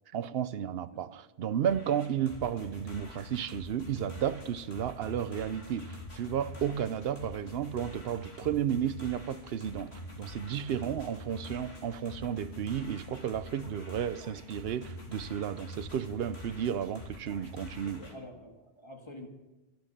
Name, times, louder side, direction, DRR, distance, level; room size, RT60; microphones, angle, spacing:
voice 1, 0.1-18.0, right 9 dB, 70° right, 0.9 m, -33 dB
sound 1, 1.7-18.1, left 2 dB, 90° left, 3.1 m, -46 dB
voice 2, 7.0-7.5 10.7-11.1 17.8-19.3, left 1 dB, 25° left, 1.9 m, -48 dB
12.5 x 12.0 x 7.4 m
omnidirectional pair, 1.1 m